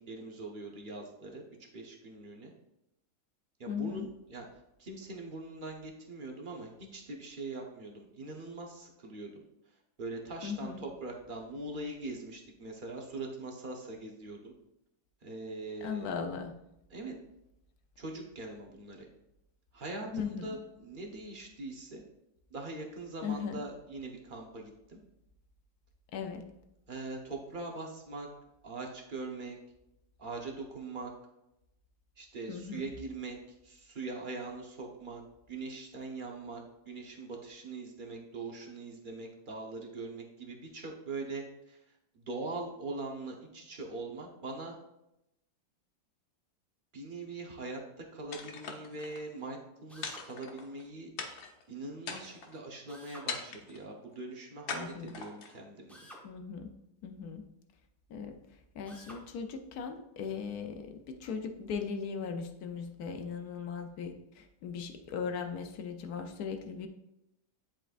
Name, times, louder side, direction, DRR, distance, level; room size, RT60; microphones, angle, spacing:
voice 1, 0.0-1.5 1.7-2.5 3.6-4.4 4.8-9.4 10.0-14.5 15.2-16.2 16.9-17.2 18.0-19.1 19.7-22.0 22.5-25.0 26.9-28.3 28.6-29.6 30.2-31.1 32.2-33.4 33.6-35.2 35.5-41.8 42.1-44.8 46.9-51.1 51.7-56.0, right 3 dB, 40° right, 1 dB, 0.7 m, -42 dB
voice 2, 3.7-4.1 10.4-10.8 15.8-16.6 20.1-20.5 23.2-23.6 26.1-26.5 32.5-32.9 54.7-55.1 56.2-56.7 57.0-57.4 58.1-58.3 58.7-66.9, left 6 dB, 65° left, 5 dB, 1.1 m, -38 dB
sound 1, 48.3-49.2 50.0-50.8 51.2-51.6 52.0-52.6 53.3-53.8 54.7-55.6, left 5 dB, 90° left, 1.6 m, -41 dB
Drill, 49.9-50.3 52.9-53.3 55.9-56.3 58.8-59.2, equal, ahead, 0.8 m, -51 dB
10.5 x 4.4 x 2.5 m, 0.85 s
omnidirectional pair, 2.0 m